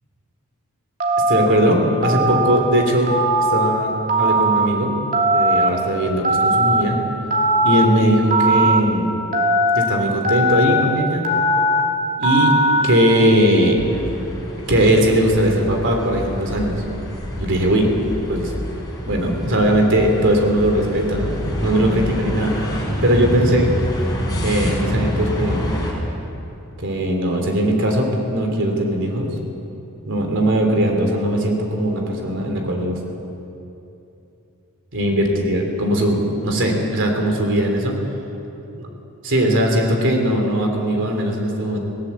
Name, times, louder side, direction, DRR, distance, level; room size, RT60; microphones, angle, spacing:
Telephone, 1.0-1.5 2.0-2.6 3.1-3.7 4.1-4.7 5.1-5.7 6.2-6.8 7.3-7.9 8.3-8.8 9.3-9.8 10.2-10.8 11.2-11.8 12.2-12.8, right 1 dB, 40° right, 2.7 m, -18 dB
voice 1, 1.3-3.1 3.4-3.9 4.2-4.9 5.3-7.0 7.6-9.1 9.7-11.2 12.2-12.5 12.8-13.8 14.7-16.8 17.4-17.9 18.3-18.5 19.1-23.7 24.4-25.7 26.8-29.3 30.1-33.0 34.9-37.9 39.2-41.8, right 1 dB, 60° right, 2 dB, 3.2 m, -19 dB
sound 1, 13.8-25.9, left 1 dB, 20° left, 4.7 m, -27 dB
19.5 x 17.5 x 8.4 m, 2.8 s
head